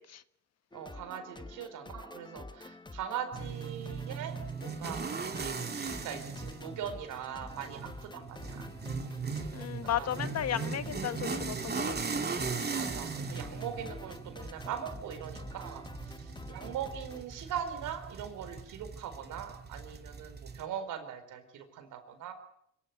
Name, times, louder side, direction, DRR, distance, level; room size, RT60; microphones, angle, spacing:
sound 1, 0.7-17.2, left 2 dB, 15° left, 1.1 m, -48 dB
voice 1, 0.7-8.7 9.5-10.1 12.7-22.3, right 8 dB, 90° right, 8 dB, 4.5 m, -41 dB
sound 2, 3.3-20.6, right 5 dB, 35° right, 2.7 m, -39 dB
voice 2, 9.5-12.2, left 10 dB, 60° left, 13 dB, 1.4 m, -34 dB
24.5 x 16.0 x 9.6 m, 0.70 s
cardioid pair, 90°, 30 cm